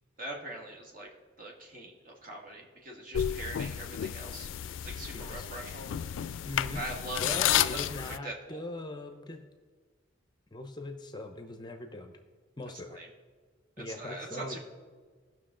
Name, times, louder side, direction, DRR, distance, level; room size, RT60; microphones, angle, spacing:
voice 1, 0.2-1.1 1.4-4.5 4.8-5.9 6.7-7.8 8.2-8.6 12.9-13.1 14.0-14.6, right 2 dB, 45° right, -1 dB, 1.8 m, -42 dB
sound 1, 3.1-8.2, left 10 dB, 80° left, 0.3 m, -32 dB
voice 2, 5.1-5.5 6.4-6.8 7.2-9.4 10.5-12.1 12.6-13.0 13.8-14.6, left 2 dB, 25° left, 6 dB, 0.6 m, -40 dB
17.0 x 6.1 x 3.7 m, 1.5 s
head